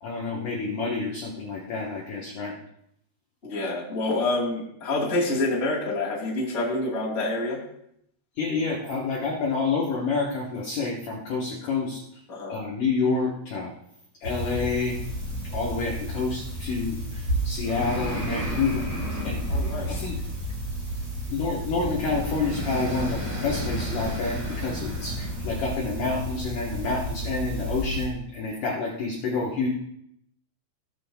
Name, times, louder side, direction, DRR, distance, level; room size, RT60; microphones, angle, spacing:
voice 1, 0.0-2.5 8.4-12.0 12.5-13.7 14.2-15.0 15.5-18.9 19.2-19.4 19.9-20.1 21.3-29.7, left 4 dB, 70° left, -3 dB, 2.0 m, -28 dB
voice 2, 3.4-7.6 12.3-12.6 19.5-20.1, left 2 dB, 20° left, -5 dB, 1.9 m, -27 dB
sound 1, 14.2-28.1, equal, 30° right, 2.9 m, -31 dB
19.0 x 7.2 x 2.4 m, 0.74 s
omnidirectional pair, 5.6 m